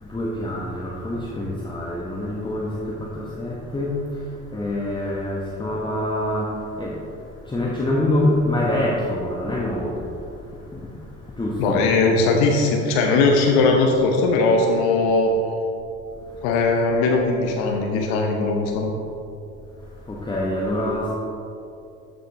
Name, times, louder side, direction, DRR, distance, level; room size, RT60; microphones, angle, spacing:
voice 1, 0.0-4.0 4.5-7.0 7.5-10.1 10.7-10.8 11.4-11.9 20.1-21.1, left 1 dB, 10° left, -3 dB, 1.2 m, -25 dB
voice 2, 11.6-15.3 16.4-18.9, left 3 dB, 70° left, 1 dB, 0.9 m, -19 dB
12.5 x 5.4 x 3.4 m, 2.7 s
hypercardioid pair, 60°, 38 cm